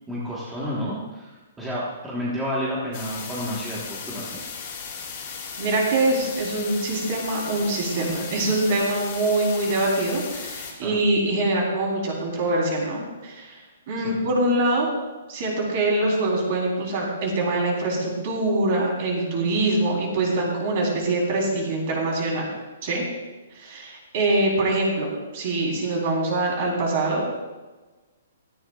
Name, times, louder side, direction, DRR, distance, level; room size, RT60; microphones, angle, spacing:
voice 1, 0.1-4.4 10.7-11.0 14.0-14.2, equal, 5° right, -7 dB, 1.4 m, -31 dB
sound 1, 2.9-10.7, left 6 dB, 30° left, 3.1 m, -36 dB
voice 2, 5.6-13.6 13.9-14.9 15.3-22.5 22.8-23.0 23.5-25.1 25.3-27.2, right 2 dB, 35° right, -2 dB, 3.8 m, -24 dB
16.5 x 14.5 x 2.4 m, 1.2 s
hypercardioid pair, 175°, 0 cm